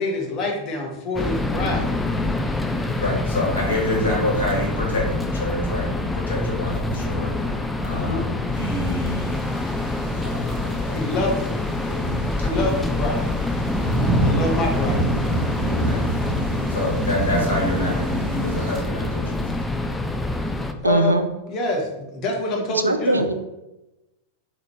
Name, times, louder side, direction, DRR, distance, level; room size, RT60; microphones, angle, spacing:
voice 1, 0.0-1.9 7.9-8.3 10.9-11.6 12.4-13.3 14.2-15.1 20.8-21.1 21.5-23.2, left 2 dB, 35° left, 0 dB, 1.0 m, -26 dB
sound 1, 1.1-20.7, left 2 dB, 5° left, 0.3 m, -26 dB
voice 2, 1.5-1.9 3.0-7.3 7.8-9.4 10.1-10.9 11.9-12.7 13.8-14.2 15.7-16.1 16.7-19.9, left 1 dB, 75° left, -3 dB, 1.3 m, -27 dB
sound 2, 8.6-18.8, right 2 dB, 35° right, 0.7 m, -29 dB
voice 3, 20.8-21.3 22.8-23.3, right 2 dB, 80° right, 8 dB, 0.3 m, -20 dB
3.9 x 2.9 x 3.1 m, 0.96 s
figure-of-eight pair, 90°, 0 cm